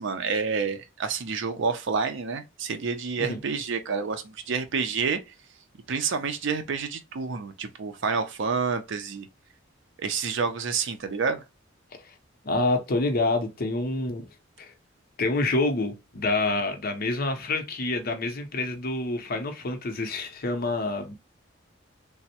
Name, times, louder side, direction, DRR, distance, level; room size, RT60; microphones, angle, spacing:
voice 1, 0.0-5.2 5.9-9.3 10.0-11.4, right 5 dB, 65° right, 0.5 m, -28 dB
voice 2, 12.4-14.3 14.6-14.7 15.2-21.1, left 2 dB, 50° left, 0.6 m, -27 dB
3.4 x 2.0 x 2.7 m
head